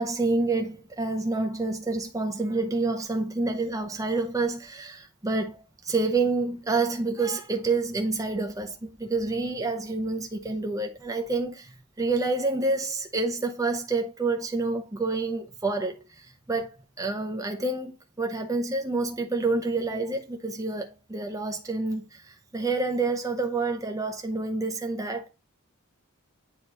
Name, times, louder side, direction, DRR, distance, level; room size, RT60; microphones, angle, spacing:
voice 1, 0.0-11.7 12.0-25.2, right 3 dB, 15° right, 0.7 m, -28 dB
8.8 x 3.0 x 4.0 m
head